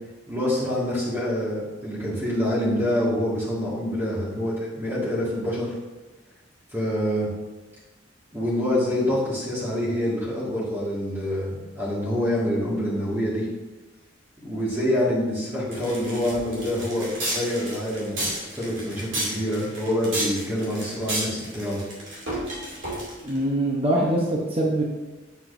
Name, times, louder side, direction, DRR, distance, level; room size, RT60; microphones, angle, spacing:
voice 1, 0.3-5.7 6.7-7.3 8.3-13.5 14.4-21.8, left 1 dB, 15° right, -8 dB, 1.9 m, -26 dB
sound 1, 15.7-23.4, right 1 dB, 75° right, 2.6 m, -32 dB
voice 2, 23.2-24.8, right 1 dB, 30° right, -3 dB, 0.9 m, -23 dB
8.1 x 7.5 x 2.7 m, 1.2 s
head